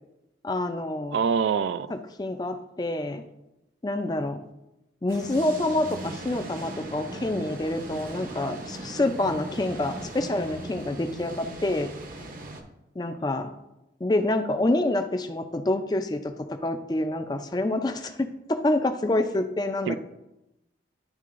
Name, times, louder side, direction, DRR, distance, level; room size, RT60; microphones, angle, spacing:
voice 1, 0.4-1.2 2.2-3.2 3.8-4.4 5.0-11.9 13.0-13.5 14.0-19.9, left 2 dB, 20° left, 0.4 m, -27 dB
voice 2, 1.1-1.9 19.9-20.0, right 6 dB, 80° right, 0.3 m, -25 dB
sound 1, 5.1-12.6, right 2 dB, 45° right, 0.7 m, -39 dB
11.0 x 3.7 x 2.5 m
head